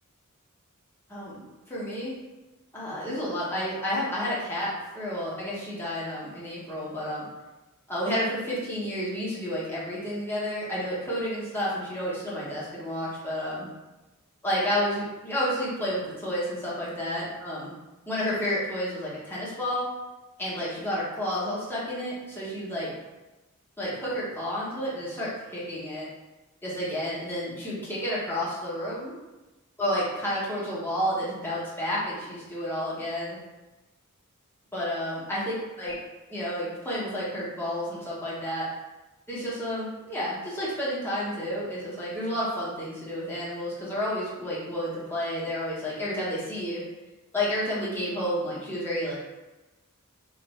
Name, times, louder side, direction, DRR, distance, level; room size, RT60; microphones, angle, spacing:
voice 1, 1.1-2.2 2.7-7.3 7.9-13.7 14.4-17.7 18.1-19.9 20.4-22.9 23.8-26.0 26.6-29.1 29.8-33.4 34.7-35.9 36.3-38.7 39.3-46.8 47.3-49.1, equal, 10° left, -8 dB, 1.0 m, -30 dB
2.6 x 2.3 x 4.0 m, 1.1 s
head